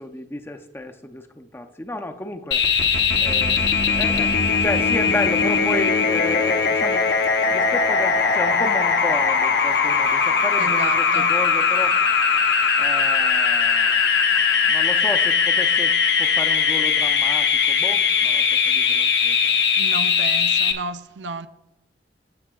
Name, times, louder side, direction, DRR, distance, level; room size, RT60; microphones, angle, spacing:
voice 1, 0.0-2.9 3.2-7.1 7.5-12.0 12.8-14.0 14.3-19.5, left 1 dB, 15° left, 0.5 m, -32 dB
sound 1, 2.5-20.7, left 5 dB, 65° left, 0.9 m, -20 dB
voice 2, 10.6-11.3 19.8-21.5, right 3 dB, 75° right, 0.5 m, -32 dB
15.0 x 7.0 x 2.3 m
head